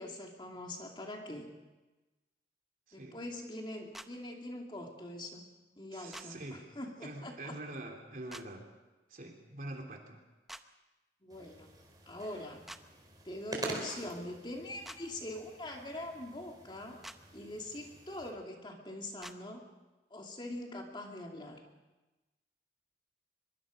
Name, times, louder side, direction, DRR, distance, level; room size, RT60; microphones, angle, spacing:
voice 1, 0.0-1.5 2.9-5.5 5.8-7.5 11.2-11.7 12.1-12.6 13.2-17.0 17.3-19.6 20.1-21.6, left 1 dB, 25° left, 1 dB, 2.6 m, -43 dB
sound 1, 3.9-4.1 6.1-6.3 8.3-8.5 10.5-10.6 12.7-12.8 14.8-15.0 17.0-17.2 19.2-19.4, equal, ahead, 0.7 m, -46 dB
voice 2, 5.9-6.6 7.0-8.6 9.1-10.2, right 1 dB, 50° right, 1 dB, 3.4 m, -45 dB
sound 2, 11.3-18.3, right 2 dB, 25° right, 4.0 m, -46 dB
23.5 x 23.5 x 5.2 m, 1.1 s
head